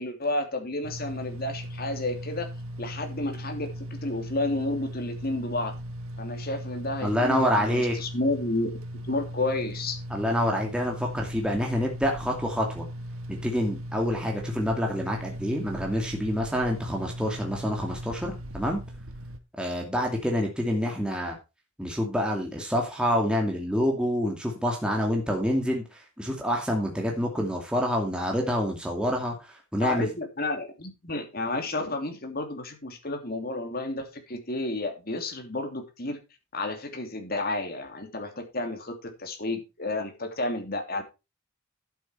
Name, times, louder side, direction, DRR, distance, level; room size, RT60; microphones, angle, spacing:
voice 1, 0.0-2.5 2.8-5.7 6.2-8.7 9.0-10.0 29.8-36.2 36.5-41.0, left 2 dB, 45° left, 5 dB, 3.0 m, -31 dB
sound 1, 0.8-19.4, equal, 80° right, 1.4 m, -38 dB
voice 2, 7.0-8.0 10.1-12.9 13.3-18.8 19.6-21.4 21.8-25.8 26.2-30.1, equal, 5° right, 0 dB, 2.4 m, -27 dB
11.5 x 8.6 x 4.5 m, 0.27 s
head